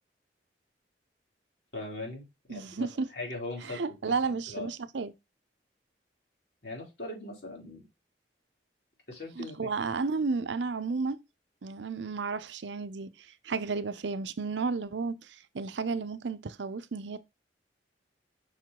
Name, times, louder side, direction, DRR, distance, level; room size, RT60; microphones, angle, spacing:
voice 1, 1.7-4.7 6.6-7.9 9.1-9.7, left 2 dB, 65° left, 3.2 m, -40 dB
voice 2, 2.5-3.1 3.7-5.1 9.4-11.2 11.6-13.1 13.4-17.2, right 4 dB, 90° right, 0.6 m, -32 dB
5.6 x 4.7 x 3.7 m
head